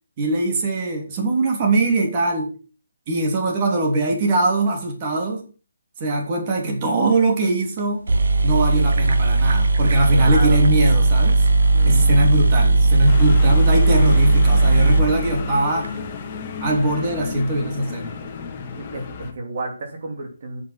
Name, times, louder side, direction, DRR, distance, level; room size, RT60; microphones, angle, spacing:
voice 1, 0.2-2.5 3.1-5.4 6.0-8.0 8.4-11.4 11.9-15.9 16.6-18.1, right 2 dB, 30° right, 2 dB, 3.3 m, -21 dB
sound 1, 7.8-7.9 8.1-15.9, right 2 dB, 75° right, 1.5 m, -17 dB
voice 2, 10.1-10.6 11.7-12.2 13.4-13.6 18.8-20.6, right 2 dB, 50° right, 3 dB, 2.7 m, -31 dB
sound 2, 13.1-19.3, left 5 dB, 25° left, 2.1 m, -33 dB
9.1 x 7.9 x 7.2 m, 0.36 s
hypercardioid pair, 165°, 0 cm